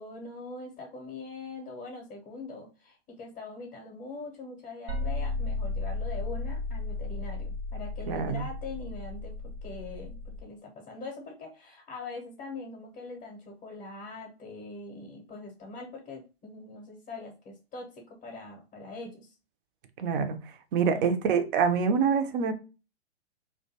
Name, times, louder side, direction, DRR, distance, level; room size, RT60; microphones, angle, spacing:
voice 1, 0.0-9.3 9.6-19.3 20.9-21.1, left 3 dB, 20° left, 0.6 m, -42 dB
sound 1, 4.9-10.4, left 3 dB, 70° right, 0.9 m, -34 dB
voice 2, 8.1-8.4 20.0-20.4 20.7-22.5, right 6 dB, 50° right, 0.5 m, -25 dB
2.4 x 2.3 x 2.6 m
hypercardioid pair, 115°, 35 cm